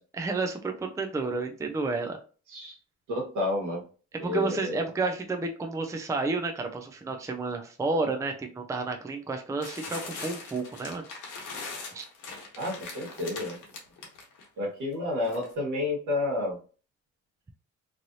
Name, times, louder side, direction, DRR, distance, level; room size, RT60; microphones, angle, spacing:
voice 1, 0.1-2.2 4.2-11.0 11.9-12.0, right 3 dB, 10° right, 4 dB, 0.4 m, -31 dB
voice 2, 3.1-3.8 4.2-4.8 12.6-13.6 14.6-16.6, left 2 dB, 75° right, -1 dB, 1.4 m, -30 dB
sound 1, 9.6-14.5 15.2-15.5, left 4 dB, 85° left, 1.0 m, -41 dB
3.1 x 2.6 x 2.6 m, 0.38 s
cardioid pair, 90°, 30 cm